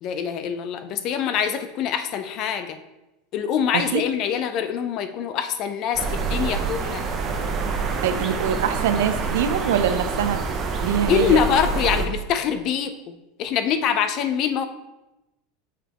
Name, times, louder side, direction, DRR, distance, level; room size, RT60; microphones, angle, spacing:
voice 1, 0.0-2.8 3.3-7.0 11.1-14.6, left 8 dB, 40° left, 9 dB, 0.5 m, -24 dB
sound 1, 5.9-12.1, right 4 dB, 25° right, 0.6 m, -26 dB
voice 2, 8.0-10.4 10.8-11.4, right 8 dB, 85° right, 9 dB, 0.5 m, -23 dB
6.8 x 4.9 x 2.9 m, 0.97 s
supercardioid pair, 150°, 0 cm